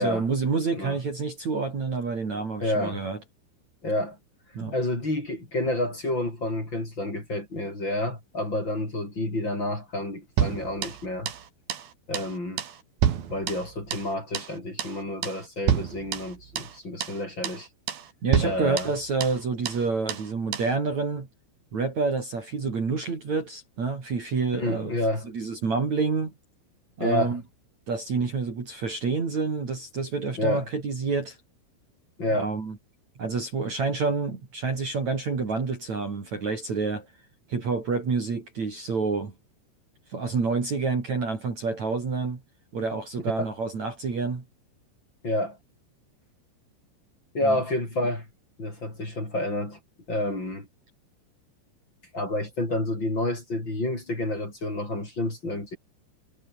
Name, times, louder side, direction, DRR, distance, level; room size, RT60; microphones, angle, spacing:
voice 1, 0.0-3.2 4.5-4.7 18.2-21.3 21.7-24.9 25.3-26.3 27.0-27.4 27.9-31.4 32.3-32.8 33.2-37.1 37.5-39.3 40.1-42.4 42.7-44.4 47.4-47.6, right 4 dB, 40° right, 4.9 m, -28 dB
voice 2, 2.6-3.0 3.8-4.2 4.7-11.3 12.1-12.6 13.3-17.7 18.4-18.9 24.6-25.3 27.0-27.4 30.4-30.7 32.2-32.5 43.3-43.5 45.2-45.6 47.3-48.3 48.6-49.8 50.1-50.7 52.1-55.8, left 1 dB, 20° left, 7.4 m, -29 dB
sound 1, 10.4-11.4 11.7-11.9 12.1-12.3 12.6-14.1 14.3-14.5 14.8-15.0 15.2-15.4 15.7-16.7 17.0-17.2 17.4-17.6 17.9-18.1 18.3-19.4 19.7-19.8 20.1-20.3 20.5-20.7, right 9 dB, 55° right, 3.8 m, -28 dB
omnidirectional pair, 5.6 m